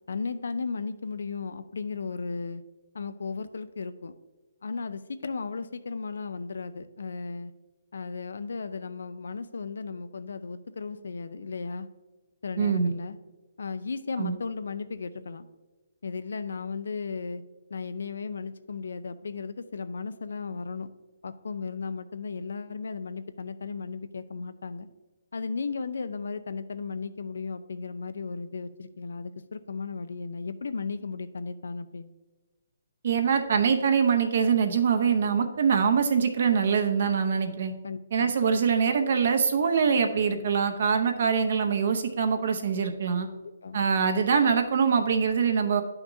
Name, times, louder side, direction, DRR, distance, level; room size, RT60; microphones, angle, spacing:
voice 1, 0.1-2.6 2.9-4.1 4.6-7.5 7.9-11.9 12.4-13.2 13.6-15.5 16.0-17.4 17.7-20.9 21.2-24.9 25.3-32.1 37.8-38.3 43.3-43.8, left 4 dB, 75° left, 13 dB, 0.5 m, -35 dB
voice 2, 12.6-12.9 14.2-14.4 33.0-37.7 38.1-43.3 43.7-45.8, right 6 dB, 50° right, 6 dB, 0.7 m, -24 dB
9.9 x 5.8 x 2.7 m, 1.2 s
hypercardioid pair, 170°, 0 cm